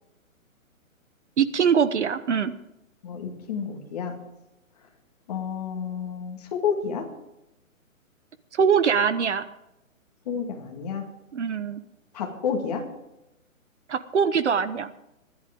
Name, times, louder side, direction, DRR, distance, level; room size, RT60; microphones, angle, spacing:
voice 1, 1.4-2.5 8.5-9.5 11.3-11.8 13.9-14.9, right 6 dB, 55° right, 13 dB, 1.0 m, -23 dB
voice 2, 3.0-4.2 5.3-7.1 10.3-11.1 12.1-12.8, left 6 dB, 30° left, 2 dB, 2.1 m, -30 dB
25.5 x 11.0 x 3.7 m, 0.89 s
hypercardioid pair, 170°, 42 cm